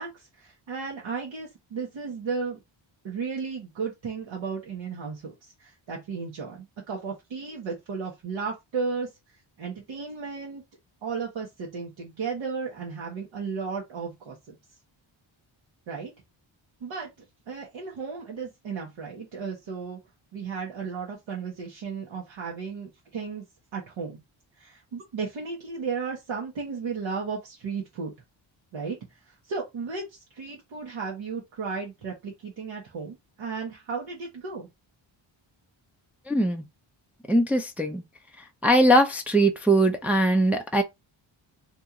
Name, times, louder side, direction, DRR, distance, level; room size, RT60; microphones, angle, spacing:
voice 1, 0.0-2.6 3.0-10.6 11.0-14.6 15.9-16.1 16.8-17.1 17.5-20.0 20.3-23.4 23.7-24.2 24.6-28.2 28.7-34.7, right 5 dB, 70° right, 1.2 m, -34 dB
voice 2, 36.3-36.6 37.3-38.0 38.6-40.8, right 1 dB, 5° right, 0.5 m, -21 dB
3.0 x 2.6 x 3.6 m
wide cardioid pair, 110°, 49 cm